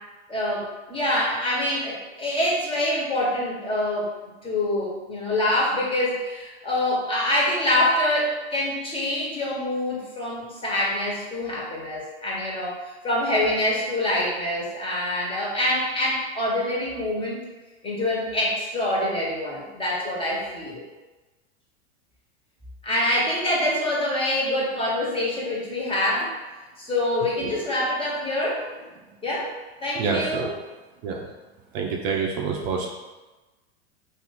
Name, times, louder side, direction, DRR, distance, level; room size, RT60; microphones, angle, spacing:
voice 1, 0.3-4.1 4.4-12.8 13.0-17.4 17.8-20.8 22.8-26.3 26.8-28.8 29.2-29.5 29.8-30.5, left 1 dB, 15° left, -5 dB, 1.3 m, -25 dB
voice 2, 30.0-30.5 31.0-31.3 31.7-32.9, right 5 dB, 50° right, 0 dB, 0.7 m, -27 dB
3.0 x 2.7 x 4.0 m, 1.2 s
hypercardioid pair, 95°, 32 cm